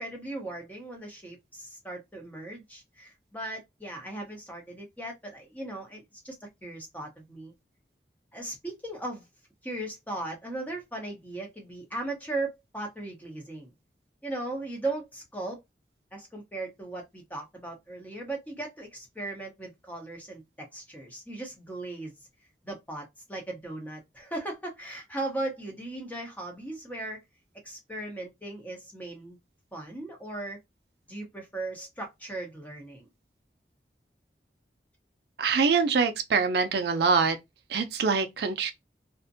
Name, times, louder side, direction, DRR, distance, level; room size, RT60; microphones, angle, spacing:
voice 1, 0.0-7.5 8.3-9.3 9.6-13.7 14.2-15.6 16.1-22.1 22.6-27.2 27.6-29.4 29.7-30.6 31.1-33.1, right 2 dB, 10° left, 0.8 m, -37 dB
voice 2, 35.4-37.4 37.7-38.7, right 5 dB, 70° right, 0.4 m, -24 dB
2.5 x 2.1 x 2.6 m
head